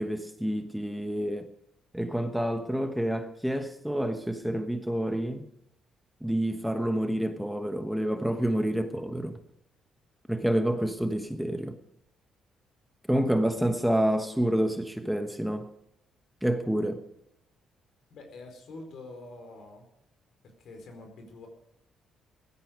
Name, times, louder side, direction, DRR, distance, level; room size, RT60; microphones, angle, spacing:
voice 1, 0.0-1.5 1.9-5.5 6.2-9.4 10.3-11.8 13.1-15.7 16.4-17.1, right 1 dB, 5° right, 1.2 m, -28 dB
voice 2, 18.1-19.8 20.4-21.5, left 2 dB, 70° left, 4.4 m, -46 dB
16.0 x 13.0 x 5.2 m
cardioid pair, 90°, 0 cm